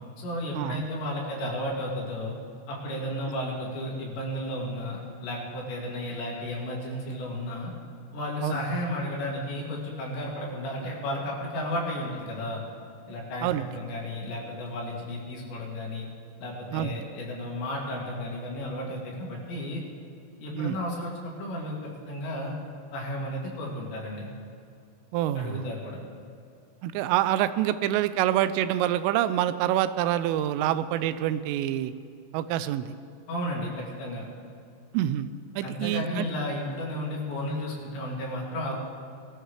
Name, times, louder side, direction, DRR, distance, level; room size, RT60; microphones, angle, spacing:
voice 1, 0.2-2.3 2.7-7.7 8.1-12.6 13.1-16.1 16.4-19.8 20.4-22.5 22.9-24.3 25.4-26.0 33.3-34.3 35.6-38.7, left 1 dB, 65° left, -3 dB, 4.4 m, -33 dB
voice 2, 25.1-25.7 26.8-31.9 32.3-32.9 34.9-36.3, right 12 dB, 85° right, 13 dB, 3.1 m, -26 dB
21.5 x 14.5 x 3.2 m, 2.5 s
omnidirectional pair, 5.7 m